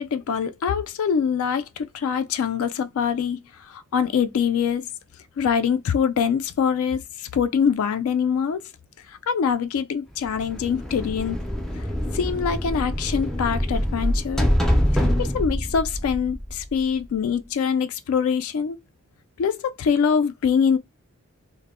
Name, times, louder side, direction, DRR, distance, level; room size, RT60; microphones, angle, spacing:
voice 1, 0.0-4.9 5.4-8.6 9.1-11.4 11.7-11.8 12.1-14.5 14.9-18.8 19.4-20.8, left 7 dB, 80° left, 0.3 m, -24 dB
sound 1, 10.3-17.0, equal, ahead, 0.3 m, -25 dB
2.0 x 2.0 x 3.5 m
head